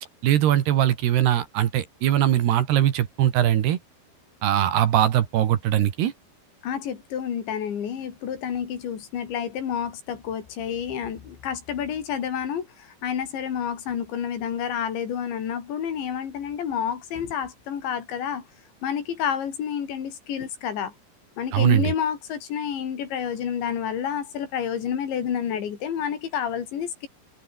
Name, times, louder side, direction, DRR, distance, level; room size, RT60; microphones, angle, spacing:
voice 1, 0.2-3.8 4.4-6.1 21.5-21.9, right 11 dB, 65° right, 3.5 m, -21 dB
voice 2, 6.6-18.5 18.8-20.9 21.4-27.1, left 8 dB, 70° left, 5.5 m, -29 dB
omnidirectional pair, 5.5 m